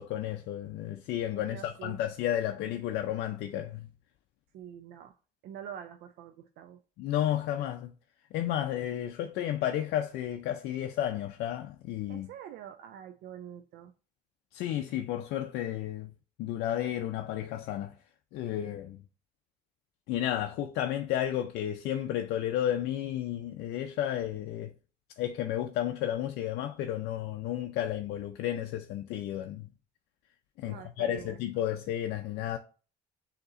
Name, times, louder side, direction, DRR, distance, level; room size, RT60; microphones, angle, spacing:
voice 1, 0.0-3.9 7.0-7.9 8.3-12.3 14.5-16.1 16.4-17.9 18.3-19.0 20.1-24.7 25.2-29.7 30.6-32.6, left 11 dB, 85° left, 0.5 m, -32 dB
voice 2, 1.3-2.0 4.5-5.2 5.4-6.8 12.1-13.9 30.6-31.4, right 9 dB, 75° right, 0.4 m, -45 dB
6.6 x 2.9 x 2.5 m
cardioid pair, 110°, 17 cm